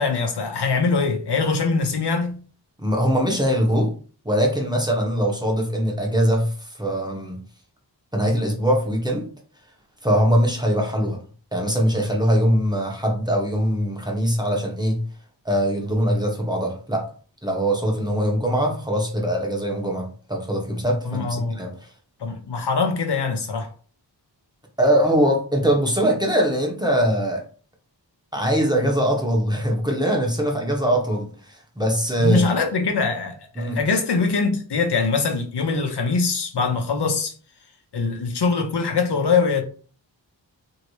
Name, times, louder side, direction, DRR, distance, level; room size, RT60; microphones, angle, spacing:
voice 1, 0.0-2.4 21.0-21.6 22.2-23.7 32.2-37.3 37.9-39.6, left 4 dB, 65° left, 0.8 m, -23 dB
voice 2, 2.8-3.9 4.2-7.4 8.1-9.3 10.0-11.2 11.5-15.0 15.4-17.1 17.4-21.7 24.8-27.4 28.3-32.5 33.6-33.8, equal, 10° right, 0.9 m, -22 dB
2.9 x 2.7 x 3.1 m
cardioid pair, 50°, 44 cm